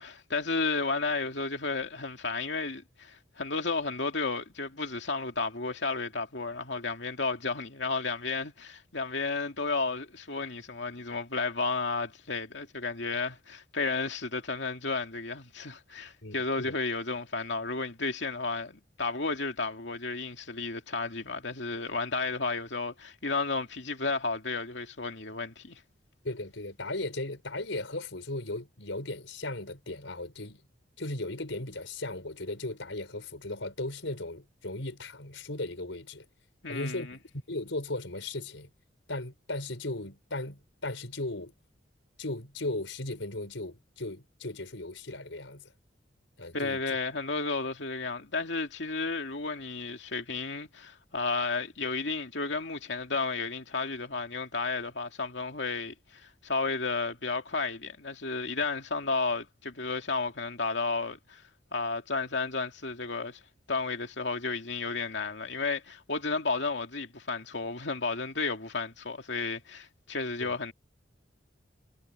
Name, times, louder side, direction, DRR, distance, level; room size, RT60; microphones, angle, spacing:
voice 1, 0.0-25.8 36.6-37.2 46.5-61.4 61.7-63.4 63.7-70.7, left 3 dB, 70° left, 2.5 m, -32 dB
voice 2, 16.2-16.7 26.2-30.6 31.0-36.3 36.7-37.2 37.5-38.7 39.1-41.5 42.2-45.7 46.4-47.0 70.4-70.5, left 2 dB, 90° left, 4.9 m, -37 dB
head